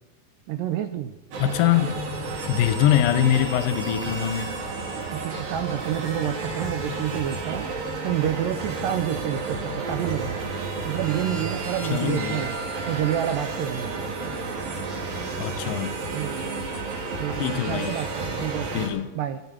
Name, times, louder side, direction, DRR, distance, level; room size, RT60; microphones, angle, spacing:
voice 1, 0.5-1.2 5.1-7.7 8.0-10.5 10.9-12.6 12.9-14.1 16.1-16.5 17.2-18.8 19.2-19.4, right 11 dB, 80° right, 2.1 m, -29 dB
sound 1, 1.3-18.9, right 3 dB, 65° right, 3.8 m, -31 dB
voice 2, 1.4-2.0 2.5-4.6 11.9-12.5 15.4-16.0 17.4-18.0 18.7-19.1, left 11 dB, 80° left, 2.2 m, -23 dB
16.0 x 12.0 x 5.9 m
omnidirectional pair, 4.6 m